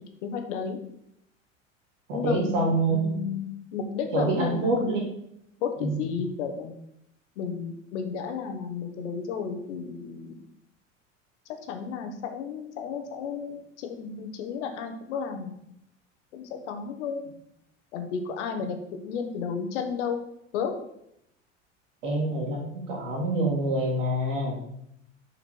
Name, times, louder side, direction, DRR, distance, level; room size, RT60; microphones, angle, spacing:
voice 1, 0.2-0.8 2.1-5.0 5.6-6.7 7.4-10.4 11.7-15.5 16.3-17.2 17.9-20.2 20.5-20.7, left 6 dB, 65° left, 5 dB, 1.2 m, -33 dB
voice 2, 2.1-3.0 4.1-5.1 5.8-6.0 22.0-24.6, right 2 dB, 70° right, -1 dB, 2.7 m, -26 dB
7.0 x 5.8 x 4.6 m, 0.76 s
figure-of-eight pair, 75°, 38 cm